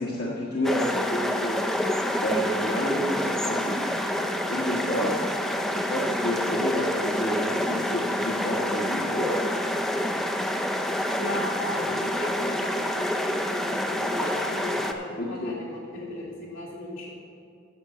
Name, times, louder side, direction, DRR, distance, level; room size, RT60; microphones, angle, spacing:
voice 1, 0.0-1.6 2.2-5.1 5.7-9.4 15.2-15.6, equal, 55° left, -5 dB, 1.3 m, -30 dB
sound 1, 0.6-14.9, left 1 dB, ahead, 0.5 m, -27 dB
voice 2, 11.2-17.1, left 1 dB, 75° left, -5 dB, 3.0 m, -36 dB
9.4 x 6.7 x 7.2 m, 2.4 s
head